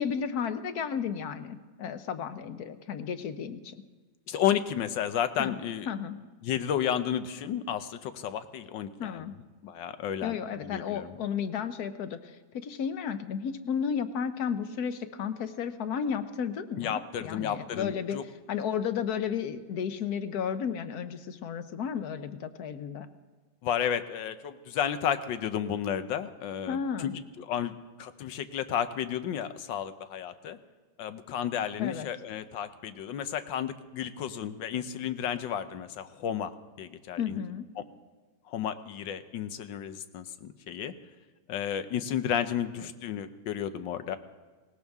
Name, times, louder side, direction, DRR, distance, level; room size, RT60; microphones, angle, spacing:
voice 1, 0.0-3.8 5.4-5.6 5.9-6.2 9.0-9.4 10.2-18.2 18.5-23.1 26.7-27.2 31.8-32.1 37.2-37.7, left 7 dB, 60° left, 10 dB, 1.3 m, -33 dB
voice 2, 4.3-5.9 6.4-9.2 9.6-11.2 16.8-18.2 23.6-30.6 31.0-36.5 36.8-37.4 37.8-37.9 38.5-40.9 41.5-44.2, left 9 dB, 85° left, 11 dB, 1.5 m, -32 dB
19.5 x 18.5 x 3.6 m, 1.4 s
omnidirectional pair, 1.9 m